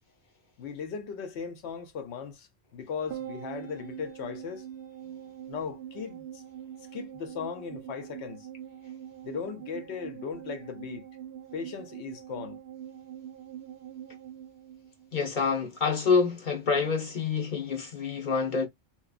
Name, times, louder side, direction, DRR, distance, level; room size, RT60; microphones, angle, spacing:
voice 1, 0.6-4.7 5.5-6.4 6.9-8.5 9.2-11.1 11.5-12.6, left 6 dB, 80° left, 0.9 m, -38 dB
sound 1, 3.1-15.6 15.9-16.0, right 10 dB, 65° right, 0.7 m, -43 dB
voice 2, 15.1-18.7, left 5 dB, 50° left, 0.9 m, -27 dB
3.0 x 2.1 x 2.3 m
omnidirectional pair, 1.1 m